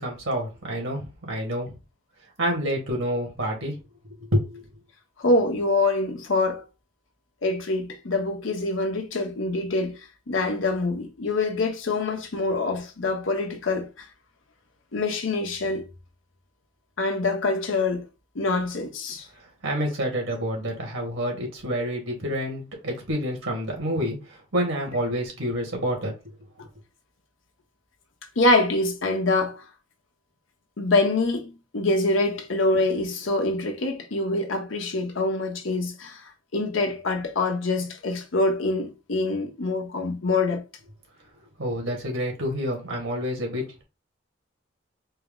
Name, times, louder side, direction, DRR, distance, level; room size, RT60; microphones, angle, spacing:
voice 1, 0.0-1.7 2.4-3.8 4.2-4.7 19.6-26.3 41.6-43.6, equal, 90° right, 1.8 m, -28 dB
voice 2, 5.2-6.6 7.4-14.0 14.9-15.9 17.0-18.0 18.3-19.3 28.4-29.6 30.8-40.6, left 2 dB, 85° left, 0.9 m, -25 dB
4.5 x 2.0 x 3.6 m
head